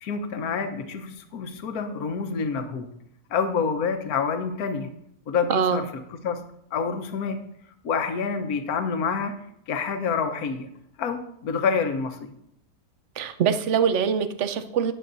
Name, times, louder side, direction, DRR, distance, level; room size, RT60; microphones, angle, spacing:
voice 1, 0.0-2.9 3.3-4.9 5.3-5.8 6.2-6.4 6.7-7.4 7.8-9.3 9.7-10.7 11.0-12.3, left 5 dB, 70° left, 7 dB, 1.4 m, -27 dB
voice 2, 5.5-5.8 13.2-14.9, right 7 dB, 55° right, 10 dB, 1.0 m, -23 dB
18.5 x 7.7 x 2.7 m, 0.74 s
omnidirectional pair, 1.7 m